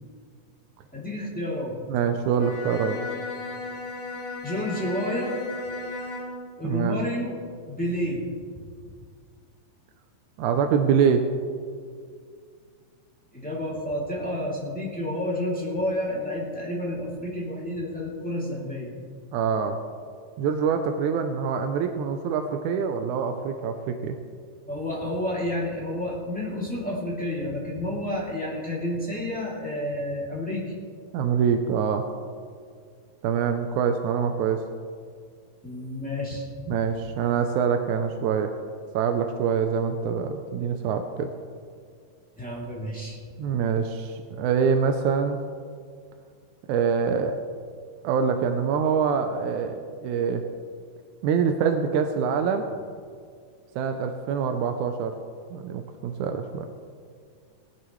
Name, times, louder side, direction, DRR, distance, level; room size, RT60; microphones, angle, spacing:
voice 1, 0.9-1.8 4.4-5.4 6.6-7.4 7.7-8.2 8.5-8.6 13.3-18.9 24.7-30.7 35.6-36.8 42.4-43.2, left 1 dB, 5° left, -6 dB, 2.0 m, -30 dB
voice 2, 1.9-3.0 6.6-7.0 10.4-11.2 19.3-19.8 20.4-24.2 31.1-32.1 33.2-34.6 36.7-38.6 38.9-41.3 43.4-45.4 46.7-47.4 48.0-50.4 51.2-52.7 53.8-55.1 55.5-56.7, right 6 dB, 80° right, 6 dB, 1.8 m, -25 dB
Bowed string instrument, 2.3-6.5, left 3 dB, 80° left, 3.8 m, -35 dB
18.5 x 12.0 x 3.1 m, 2.1 s
omnidirectional pair, 4.0 m